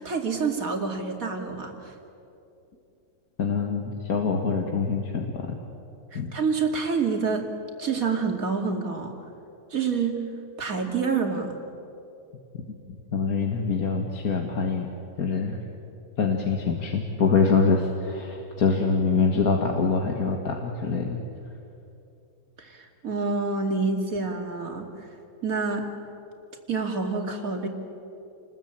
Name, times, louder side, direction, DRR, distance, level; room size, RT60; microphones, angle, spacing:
voice 1, 0.0-1.9 6.1-7.5 7.8-9.1 9.7-10.2 10.6-11.5 22.6-24.9 25.4-25.9 26.7-27.7, right 4 dB, 40° right, 3 dB, 2.8 m, -27 dB
voice 2, 3.4-5.6 6.1-6.3 12.5-12.6 13.1-14.9 15.2-15.6 16.2-21.2, left 5 dB, 45° left, 2 dB, 2.0 m, -25 dB
29.0 x 21.0 x 8.9 m, 2.7 s
omnidirectional pair, 2.4 m